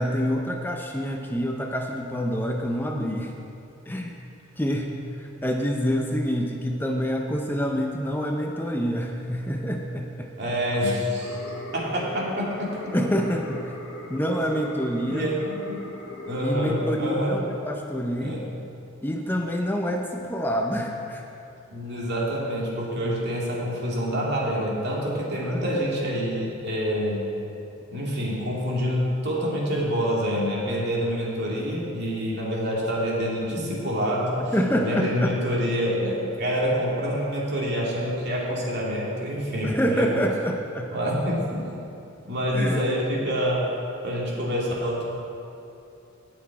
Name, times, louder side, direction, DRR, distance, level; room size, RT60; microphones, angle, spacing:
voice 1, 0.0-3.3 3.9-4.1 4.6-4.9 5.2-10.3 12.9-13.7 14.1-15.3 16.4-18.4 19.0-21.2 25.4-25.6 34.5-35.3 39.6-40.9 42.5-42.8, equal, 10° left, 2 dB, 0.6 m, -27 dB
voice 2, 10.4-11.4 11.7-13.0 15.1-15.9 16.2-17.4 18.2-18.5 21.7-27.3 27.9-34.5 34.8-40.2 40.9-41.6 42.3-43.7 44.0-45.0, equal, 55° right, -4 dB, 2.4 m, -27 dB
sound 1, 11.2-17.2, left 1 dB, 90° left, 1.8 m, -39 dB
18.0 x 6.0 x 4.7 m, 2.7 s
head